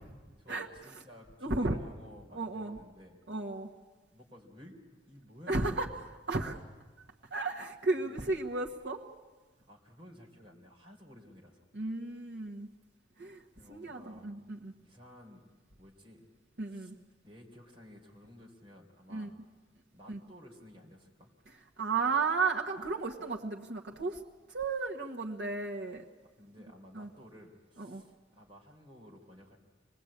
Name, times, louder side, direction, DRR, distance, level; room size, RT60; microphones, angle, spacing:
voice 1, 0.4-3.2 4.1-4.8 5.1-5.7 7.9-8.3 9.7-11.7 13.5-14.4 14.8-15.4 15.8-16.3 16.6-16.9 17.2-19.4 19.9-21.4 26.2-29.6, equal, 30° right, -1 dB, 3.7 m, -54 dB
voice 2, 1.4-1.8 2.3-2.8 3.3-3.7 5.5-5.9 6.3-6.6 7.3-9.0 11.7-12.7 13.2-13.4 13.7-14.7 16.6-16.9 19.1-19.3 20.1-20.2 21.8-24.2 24.5-26.0 26.9-27.1 27.8-28.0, right 3 dB, 80° right, 0 dB, 1.3 m, -33 dB
25.5 x 20.0 x 8.7 m, 1.3 s
head